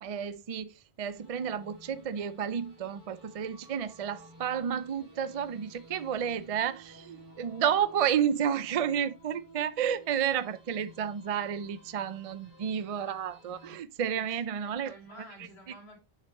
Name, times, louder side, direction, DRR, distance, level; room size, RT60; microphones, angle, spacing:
voice 1, 0.0-15.0 15.7-15.8, right 8 dB, 50° right, 0.4 m, -31 dB
sound 1, 1.1-13.7, right 1 dB, 75° right, 3.0 m, -55 dB
voice 2, 14.1-16.0, equal, 85° left, 2.7 m, -51 dB
6.8 x 5.7 x 2.9 m
omnidirectional pair, 1.1 m